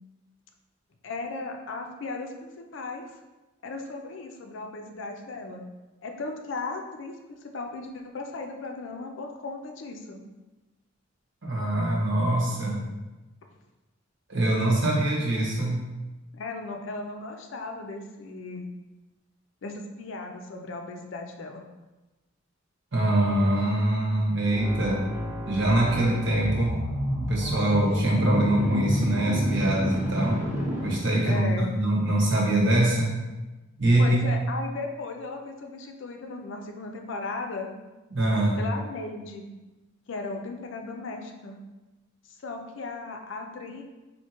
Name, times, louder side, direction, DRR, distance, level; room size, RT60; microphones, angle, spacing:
voice 1, 1.0-3.0 3.6-5.6 6.0-10.2 16.3-18.7 19.6-21.6 31.2-31.7 34.0-37.7 38.6-39.5 40.1-41.6 42.4-43.8, left 3 dB, 65° left, 3 dB, 0.5 m, -36 dB
voice 2, 11.4-12.8 14.3-15.9 22.9-25.0 25.5-26.8 27.3-30.4 30.8-33.1 33.8-34.4 38.1-38.6, right 1 dB, 65° right, -4 dB, 1.1 m, -23 dB
sound 1, 24.5-31.4, equal, 10° right, 0.7 m, -30 dB
4.4 x 2.7 x 2.9 m, 1.1 s
head